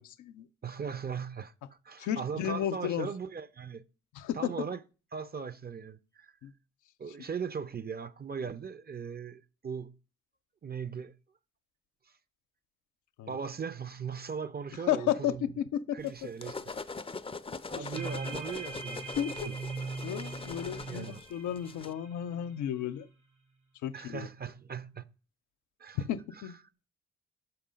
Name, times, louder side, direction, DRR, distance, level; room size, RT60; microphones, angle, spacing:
voice 1, 0.0-0.5 2.0-3.1 4.1-4.5 6.4-6.5 13.2-13.3 14.9-16.0 17.7-17.9 19.2-19.5 20.0-23.1 23.8-24.3 26.0-26.5, left 10 dB, 80° left, 0.5 m, -33 dB
voice 2, 0.6-1.5 1.8-3.8 4.3-4.8 5.1-6.3 7.0-9.9 10.6-11.1 13.3-15.5 15.9-16.7 17.7-19.5 20.9-21.2 23.9-25.1 25.8-26.1, right 6 dB, 35° right, 0.6 m, -39 dB
sound 1, 16.1-21.9, left 4 dB, 20° left, 0.5 m, -42 dB
sound 2, 17.9-22.8, right 4 dB, 80° right, 2.4 m, -41 dB
5.9 x 5.4 x 5.1 m
supercardioid pair, 50°, 29 cm